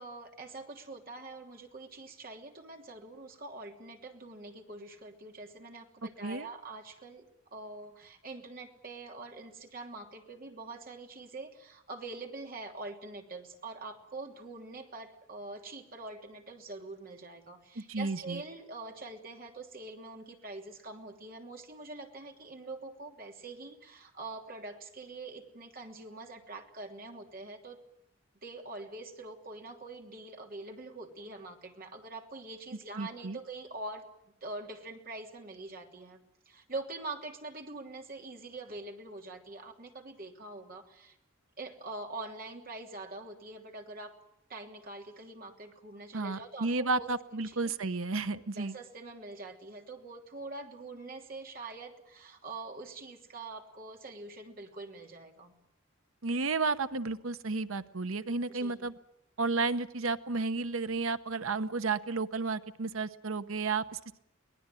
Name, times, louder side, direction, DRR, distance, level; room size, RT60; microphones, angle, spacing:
voice 1, 0.0-27.8 28.4-34.0 34.4-36.2 36.5-41.2 41.6-44.1 44.5-47.7 48.5-55.5 58.5-58.9, right 2 dB, 45° right, 3 dB, 3.0 m, -44 dB
voice 2, 17.8-18.4 33.0-33.4 46.1-48.7 56.2-58.9 59.4-64.2, right 3 dB, 75° right, 12 dB, 1.0 m, -32 dB
23.5 x 18.5 x 9.1 m, 0.79 s
head